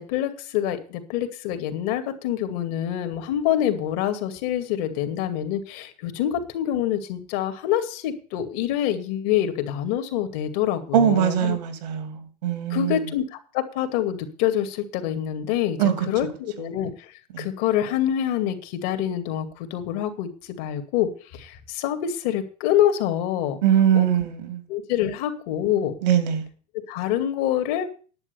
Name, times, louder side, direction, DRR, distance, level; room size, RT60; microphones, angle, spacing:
voice 1, 0.0-11.6 12.7-15.8 16.1-17.1 17.4-23.6 23.9-24.1 24.7-25.9 26.9-27.9, left 11 dB, 75° left, 8 dB, 2.3 m, -26 dB
voice 2, 10.9-13.1 15.8-16.1 17.3-17.5 23.6-24.6 26.0-26.5, right 9 dB, 90° right, 8 dB, 2.9 m, -22 dB
10.5 x 8.0 x 6.9 m, 0.40 s
supercardioid pair, 100°, 21 cm